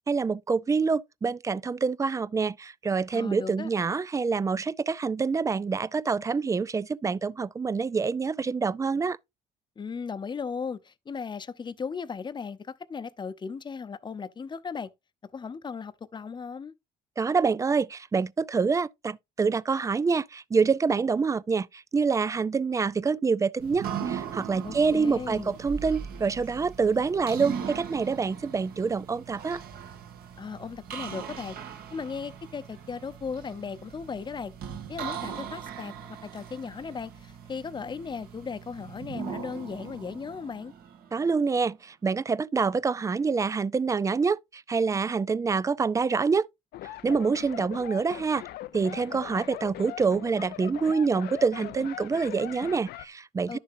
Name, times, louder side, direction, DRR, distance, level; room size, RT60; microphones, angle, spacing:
voice 1, 0.1-9.2 17.2-29.6 41.1-46.5 47.0-48.4 48.7-53.6, right 5 dB, 20° right, 0.4 m, -26 dB
voice 2, 3.1-3.7 9.8-14.9 15.2-16.7 24.6-25.6 30.4-31.6 31.9-34.5 34.9-35.9 36.3-40.7 53.5-53.6, left 5 dB, 25° left, 0.8 m, -36 dB
sound 1, 23.6-41.4, right 7 dB, 65° right, 2.1 m, -39 dB
sound 2, 46.7-53.1, left 14 dB, 70° left, 0.6 m, -41 dB
11.0 x 6.7 x 2.6 m
cardioid pair, 110°, 17 cm